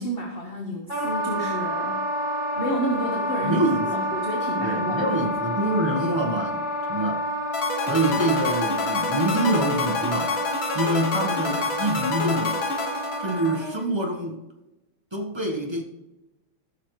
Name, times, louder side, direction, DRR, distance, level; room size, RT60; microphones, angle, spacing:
voice 1, 0.0-2.0 2.5-5.4, equal, 35° left, -1 dB, 1.2 m, -30 dB
Wind instrument woodwind instrument, 0.9-13.8, equal, 10° left, 3.6 m, -29 dB
voice 2, 3.4-4.1 4.6-6.6 6.9-7.2 7.9-10.3 10.7-12.6 13.2-14.4 15.1-15.8, right 1 dB, 20° right, 0 dB, 0.7 m, -25 dB
sound 1, 7.5-13.8, left 4 dB, 65° left, 2.0 m, -29 dB
14.0 x 6.7 x 3.2 m, 0.99 s
omnidirectional pair, 2.4 m